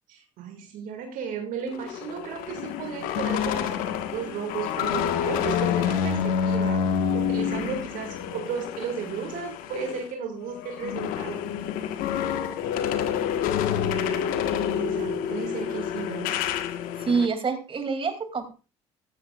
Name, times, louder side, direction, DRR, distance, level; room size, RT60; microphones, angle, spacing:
voice 1, 0.1-11.4 14.8-16.4, right 7 dB, 60° right, 4 dB, 2.1 m, -34 dB
sound 1, 1.7-10.1 10.4-17.3, left 8 dB, 65° left, 1.3 m, -28 dB
voice 2, 17.0-18.5, right 5 dB, 35° right, 6 dB, 2.5 m, -26 dB
15.5 x 13.5 x 2.4 m, 0.32 s
hypercardioid pair, 55°, 15 cm